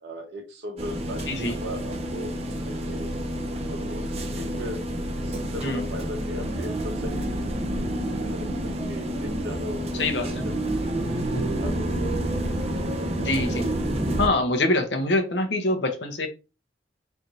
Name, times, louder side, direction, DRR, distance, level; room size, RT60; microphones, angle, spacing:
voice 1, 0.0-2.3 2.6-3.1 3.7-4.8 5.2-11.0 11.6-12.1, equal, 70° right, 2 dB, 1.2 m, -38 dB
sound 1, 0.8-14.3, right 1 dB, 35° right, 0.5 m, -29 dB
voice 2, 13.2-13.7 14.2-16.3, left 2 dB, 80° left, 6 dB, 0.9 m, -24 dB
3.4 x 2.6 x 4.1 m, 0.31 s
head